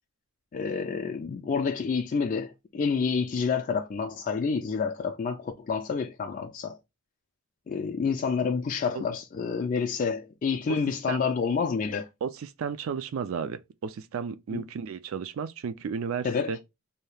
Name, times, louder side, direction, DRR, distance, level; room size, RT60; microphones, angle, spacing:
voice 1, 0.5-6.8 7.7-12.1 14.5-14.6 16.2-16.6, left 5 dB, 40° left, 0.3 m, -28 dB
voice 2, 12.2-16.6, right 6 dB, 70° right, 0.4 m, -33 dB
2.7 x 2.3 x 3.2 m
head